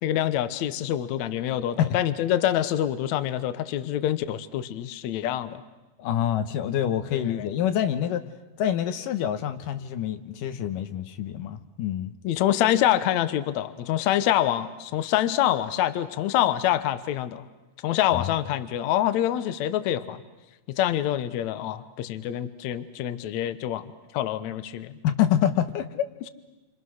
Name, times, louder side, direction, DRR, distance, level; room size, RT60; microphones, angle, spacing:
voice 1, 0.0-5.6 7.1-7.5 12.2-17.5 17.8-20.2 20.7-25.0, left 12 dB, 70° left, 12 dB, 2.1 m, -26 dB
voice 2, 6.0-8.2 8.6-12.1 18.1-18.3 25.0-26.0, left 10 dB, 85° left, 9 dB, 2.7 m, -26 dB
28.5 x 27.0 x 6.4 m, 1.1 s
omnidirectional pair, 3.8 m